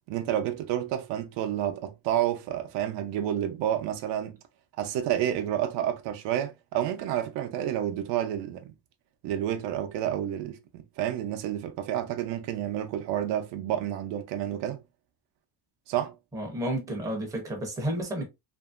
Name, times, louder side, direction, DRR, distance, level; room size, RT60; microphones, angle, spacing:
voice 1, 0.1-4.4 4.8-8.7 9.2-14.8 15.9-16.1, right 11 dB, 70° right, 0.6 m, -30 dB
voice 2, 16.3-18.3, right 1 dB, 10° right, 0.6 m, -31 dB
2.8 x 2.6 x 2.4 m
cardioid pair, 175°, 43 cm